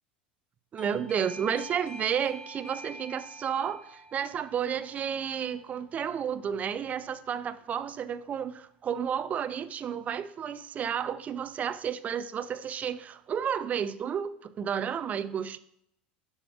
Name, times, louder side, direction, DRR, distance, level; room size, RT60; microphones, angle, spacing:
voice 1, 0.7-15.6, right 8 dB, 30° right, 0.4 m, -32 dB
Doorbell, 0.8-7.2, right 1 dB, 15° left, 0.8 m, -48 dB
10.5 x 4.8 x 2.4 m
figure-of-eight pair, 75°, 5 cm